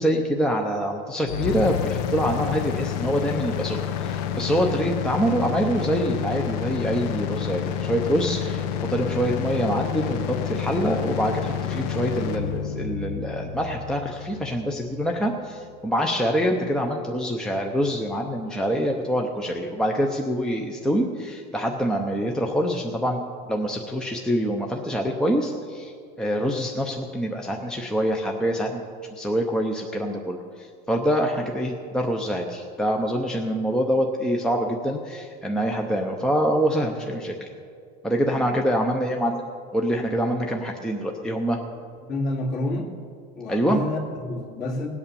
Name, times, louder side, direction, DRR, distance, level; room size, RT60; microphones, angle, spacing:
voice 1, 0.0-23.2 23.5-25.9 26.2-28.8 29.1-37.4 38.0-39.5 39.7-41.6 43.5-43.8, equal, 5° left, 2 dB, 0.6 m, -25 dB
sound 1, 1.3-15.2, left 9 dB, 60° left, 0.9 m, -29 dB
voice 2, 38.2-38.5 38.8-38.9 42.1-42.9 43.3-44.9, left 2 dB, 40° left, -1 dB, 2.3 m, -29 dB
18.0 x 8.5 x 6.9 m, 2.2 s
cardioid pair, 170°, 21 cm